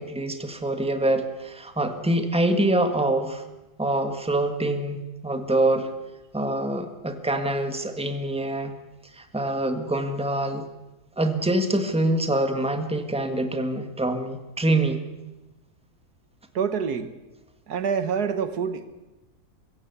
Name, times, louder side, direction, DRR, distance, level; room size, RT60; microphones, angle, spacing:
voice 1, 0.0-3.4 3.8-5.0 5.2-5.9 6.3-8.7 9.2-10.6 11.2-15.0, right 1 dB, 5° right, 7 dB, 1.6 m, -25 dB
voice 2, 16.6-17.1 17.7-18.9, right 6 dB, 75° right, 11 dB, 1.9 m, -26 dB
23.5 x 16.0 x 8.2 m, 1.0 s
omnidirectional pair, 1.7 m